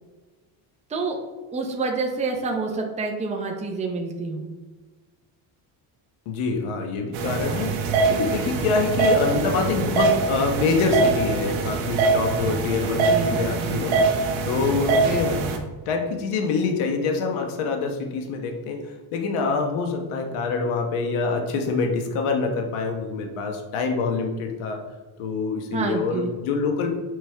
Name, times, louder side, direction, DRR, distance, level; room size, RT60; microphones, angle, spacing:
voice 1, 1.5-4.5 13.1-13.7 25.7-26.3, right 4 dB, 15° right, 1 dB, 0.7 m, -28 dB
voice 2, 6.3-14.0 14.4-15.4 15.9-24.8 25.2-26.9, left 4 dB, 80° left, 3 dB, 1.2 m, -25 dB
sound 1, 7.1-15.6, right 4 dB, 65° right, 1.1 m, -23 dB
6.7 x 5.2 x 3.4 m, 1.3 s
cardioid pair, 160°, 50 cm